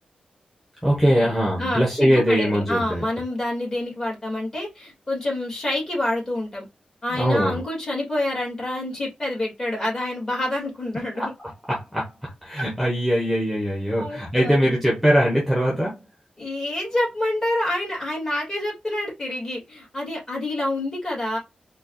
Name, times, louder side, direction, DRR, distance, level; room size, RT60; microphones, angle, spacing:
voice 1, 0.8-3.0 7.1-7.6 11.2-16.0, equal, ahead, 1.1 m, -22 dB
voice 2, 1.6-6.6 7.0-11.3 12.5-12.6 14.0-14.7 16.4-21.4, left 1 dB, 25° left, 2.5 m, -27 dB
4.3 x 2.4 x 2.7 m
wide cardioid pair, 140°, 3 cm